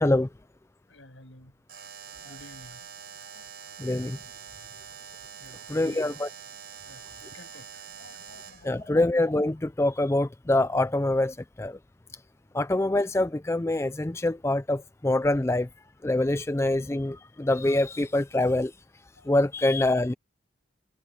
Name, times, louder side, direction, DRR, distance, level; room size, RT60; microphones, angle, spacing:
voice 1, 0.9-1.5 2.2-3.5 5.4-6.1 6.8-9.0 19.2-19.4, left 1 dB, 80° left, 7.1 m, -51 dB
Alarm, 1.7-8.7, right 7 dB, 55° right, 6.2 m, -45 dB
voice 2, 3.8-4.2 5.7-6.3 8.6-11.8 12.5-15.7 16.0-18.7 19.3-20.1, left 2 dB, 15° left, 0.4 m, -25 dB
head